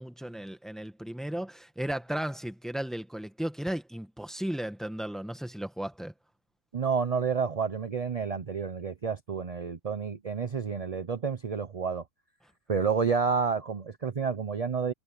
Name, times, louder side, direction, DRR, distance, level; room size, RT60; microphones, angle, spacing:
voice 1, 0.0-6.1, right 1 dB, ahead, 1.3 m, -35 dB
voice 2, 6.7-12.0 12.7-14.9, right 5 dB, 40° right, 0.5 m, -29 dB
omnidirectional pair, 1.6 m